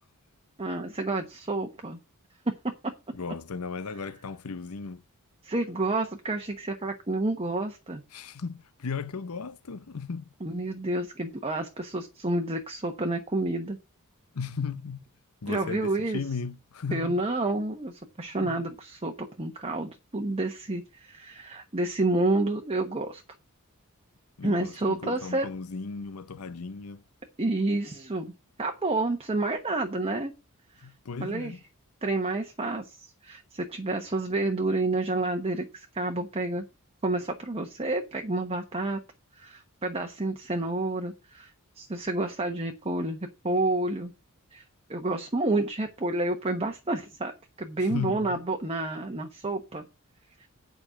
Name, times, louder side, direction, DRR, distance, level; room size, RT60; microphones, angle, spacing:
voice 1, 0.6-2.0 5.4-8.0 10.4-13.8 15.5-16.2 16.9-23.2 24.4-25.5 27.4-28.3 28.6-30.3 30.8-30.9 31.2-31.5 32.0-36.6 37.0-39.0 39.3-41.5 41.8-44.1 44.5-44.6 44.9-49.8 50.4-50.5, right 2 dB, 25° right, 1.1 m, -29 dB
voice 2, 3.1-5.0 8.1-10.3 14.3-15.0 15.4-17.2 18.4-18.6 24.4-27.0 30.8-31.6 47.8-48.4, left 5 dB, 75° left, 0.8 m, -36 dB
8.7 x 5.3 x 7.6 m
head